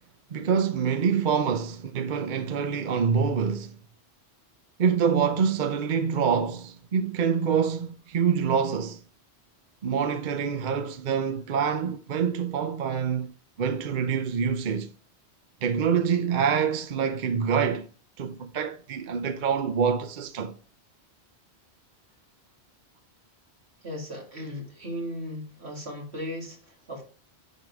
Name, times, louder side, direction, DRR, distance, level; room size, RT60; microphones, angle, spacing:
voice 1, 0.3-3.8 4.8-9.0 9.8-14.9 15.6-17.9 18.2-20.6, right 6 dB, 55° right, 0.7 m, -26 dB
voice 2, 23.8-27.0, equal, 75° right, 2.6 m, -36 dB
11.0 x 3.7 x 4.7 m
omnidirectional pair, 1.1 m